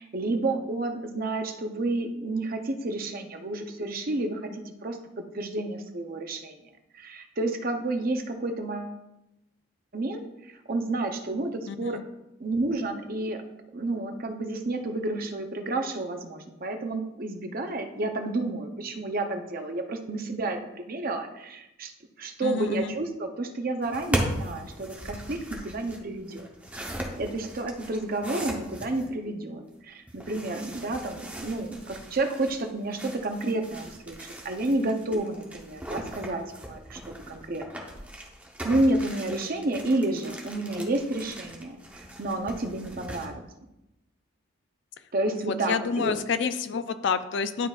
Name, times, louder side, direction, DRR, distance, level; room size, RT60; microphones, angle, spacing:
voice 1, 0.0-5.0 5.3-6.6 6.9-8.9 9.9-12.0 12.4-13.4 13.7-21.9 22.2-26.5 26.9-37.8 38.6-43.4 45.1-46.1, right 2 dB, 45° right, 5 dB, 0.6 m, -30 dB
voice 2, 11.7-12.0 22.4-22.9 45.3-47.7, left 5 dB, 55° left, 11 dB, 0.4 m, -29 dB
sound 1, 23.8-29.1 30.1-43.3, right 1 dB, 5° right, 0.8 m, -38 dB
11.0 x 3.9 x 2.4 m, 0.92 s
head